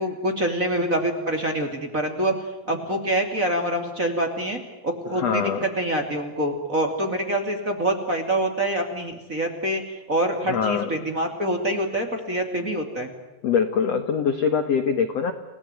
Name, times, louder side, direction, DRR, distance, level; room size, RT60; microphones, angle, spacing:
voice 1, 0.0-2.3 2.7-5.5 5.8-9.8 10.1-13.1, right 1 dB, 25° right, 4 dB, 2.5 m, -25 dB
voice 2, 5.1-5.6 10.5-10.9 13.4-15.3, left 6 dB, 65° left, 8 dB, 1.7 m, -23 dB
30.0 x 18.5 x 9.2 m, 1.1 s
omnidirectional pair, 5.0 m